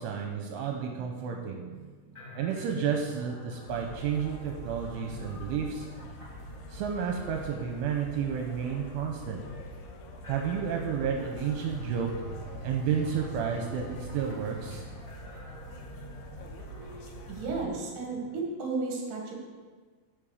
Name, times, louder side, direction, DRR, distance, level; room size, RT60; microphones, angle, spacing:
voice 1, 0.0-5.9 6.7-9.4 10.3-12.1 12.6-14.8, right 7 dB, 80° right, 2 dB, 3.1 m, -31 dB
sound 1, 2.1-18.3, left 2 dB, 25° left, 1.8 m, -47 dB
sound 2, 3.7-17.7, right 1 dB, 80° left, 3.5 m, -45 dB
sound 3, 11.6-15.5, right 3 dB, 60° left, 1.5 m, -43 dB
voice 2, 16.4-19.3, right 3 dB, 55° right, -1 dB, 2.7 m, -35 dB
8.8 x 7.3 x 6.5 m, 1.4 s
omnidirectional pair, 5.8 m